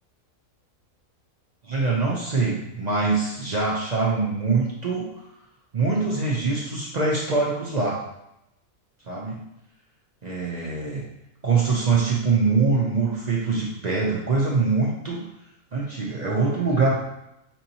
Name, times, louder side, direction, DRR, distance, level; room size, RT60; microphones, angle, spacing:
voice 1, 1.6-5.1 5.7-8.0 9.1-9.4 10.2-11.0 11.4-15.3 15.7-17.0, right 4 dB, 50° right, -4 dB, 0.5 m, -23 dB
5.3 x 2.8 x 2.8 m, 0.85 s
omnidirectional pair, 1.5 m